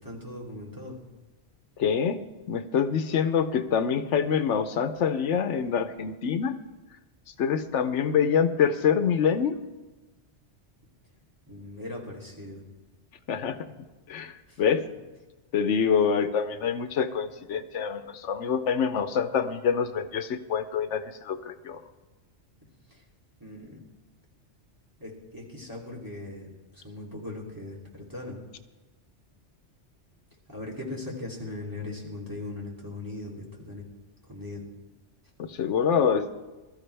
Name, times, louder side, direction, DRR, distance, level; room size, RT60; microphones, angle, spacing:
voice 1, 0.0-1.0 11.5-12.6 14.5-14.6 22.9-23.0 23.4-23.8 25.0-28.4 30.5-33.8 34.3-34.6, left 2 dB, 15° right, -3 dB, 2.9 m, -39 dB
voice 2, 1.8-2.2 2.5-6.5 7.4-9.6 13.3-13.6 14.1-14.8 15.5-21.8 35.4-36.3, left 7 dB, 85° left, 11 dB, 1.1 m, -26 dB
21.0 x 13.0 x 3.4 m, 1.2 s
omnidirectional pair, 1.2 m